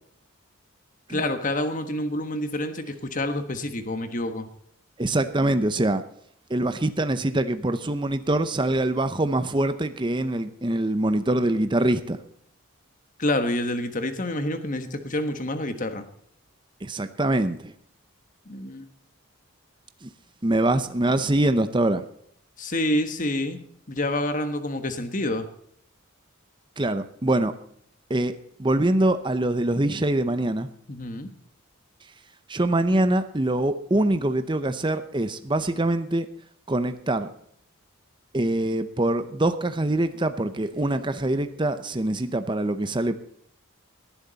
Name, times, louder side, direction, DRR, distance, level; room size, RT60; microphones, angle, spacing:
voice 1, 1.1-4.5 13.2-16.0 18.5-18.8 22.6-23.6 23.9-25.5 30.9-31.3, left 1 dB, 35° left, 9 dB, 1.3 m, -28 dB
voice 2, 5.0-6.0 6.5-12.2 16.8-17.7 20.0-20.1 20.4-22.0 26.8-27.5 28.1-28.3 28.6-30.7 32.5-36.3 36.7-37.3 38.3-43.1, right 1 dB, 20° right, 10 dB, 0.7 m, -24 dB
19.0 x 10.5 x 4.1 m, 0.68 s
head